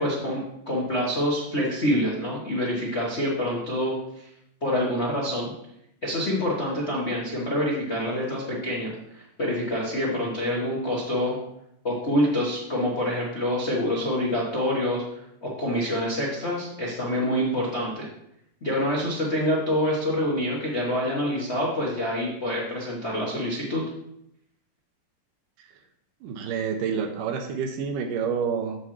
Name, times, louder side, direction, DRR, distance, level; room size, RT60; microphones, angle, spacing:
voice 1, 0.0-4.3 4.6-5.5 6.0-11.4 11.8-15.0 15.4-18.1 18.6-23.8, equal, 70° left, -6 dB, 0.6 m, -26 dB
voice 2, 26.2-28.8, right 6 dB, 85° right, 5 dB, 2.4 m, -28 dB
8.1 x 7.5 x 3.2 m, 0.78 s
omnidirectional pair, 3.7 m